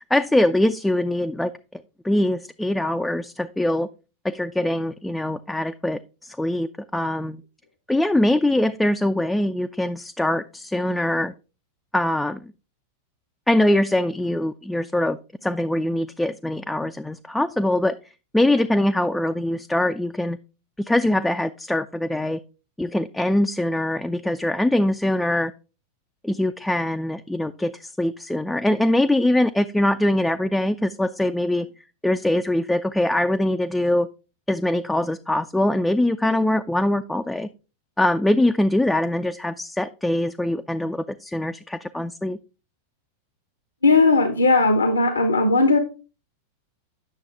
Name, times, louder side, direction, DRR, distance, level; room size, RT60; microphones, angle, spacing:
voice 1, 0.0-1.5 2.0-3.9 4.2-7.4 7.9-11.3 11.9-12.5 13.5-17.9 18.3-20.4 20.8-22.4 22.8-25.5 26.2-31.7 32.0-34.1 34.5-37.5 38.0-42.4, left 1 dB, 5° left, 7 dB, 0.3 m, -23 dB
voice 2, 43.8-45.8, left 3 dB, 75° left, 9 dB, 0.7 m, -17 dB
8.9 x 6.4 x 3.4 m, 0.32 s
figure-of-eight pair, 90°, 0 cm